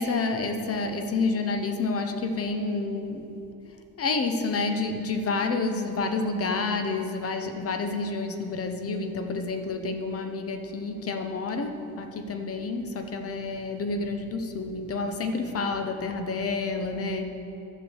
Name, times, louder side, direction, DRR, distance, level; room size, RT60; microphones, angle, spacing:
voice 1, 0.0-3.3 4.0-17.2, left 3 dB, 40° left, 6 dB, 0.9 m, -29 dB
11.0 x 6.4 x 7.8 m, 2.9 s
cardioid pair, 170°, 36 cm